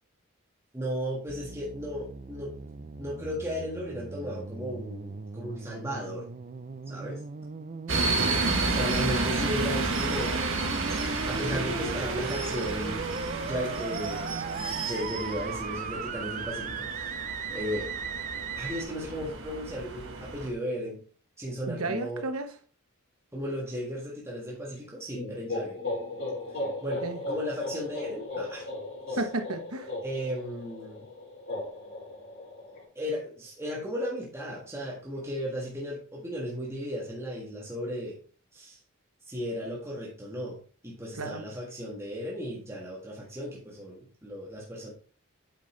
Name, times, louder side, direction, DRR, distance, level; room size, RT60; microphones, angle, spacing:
voice 1, 0.7-2.5 3.0-6.2 6.9-7.2 8.7-10.5 10.9-13.1 13.4-17.2 17.5-17.9 18.5-21.0 21.4-22.2 23.3-25.8 26.8-28.7 29.1-29.2 30.0-31.1 32.9-38.2 38.5-38.8 39.3-40.6 40.8-44.9, equal, 10° right, -4 dB, 1.6 m, -35 dB
sound 1, 1.3-18.8, right 4 dB, 35° right, 0.5 m, -38 dB
sound 2, 7.9-20.5, right 3 dB, 65° right, 1.7 m, -31 dB
voice 2, 8.0-8.8 21.7-22.5 27.0-27.2 29.2-29.9 41.1-41.4, right 2 dB, 85° right, 6 dB, 1.2 m, -33 dB
sound 3, 25.1-32.8, left 2 dB, 60° left, 4.4 m, -36 dB
8.6 x 5.8 x 3.3 m, 0.40 s
head